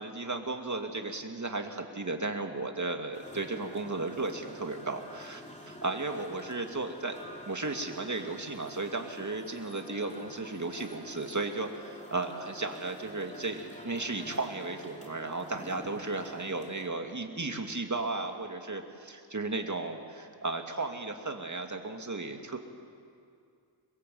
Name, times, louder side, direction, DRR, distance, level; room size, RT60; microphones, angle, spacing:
voice 1, 0.0-7.2 7.5-22.6, right 3 dB, 40° right, 4 dB, 2.3 m, -35 dB
sound 1, 3.1-16.9, left 1 dB, 15° left, 3.2 m, -48 dB
23.0 x 22.0 x 7.8 m, 2.3 s
wide cardioid pair, 55°, 44 cm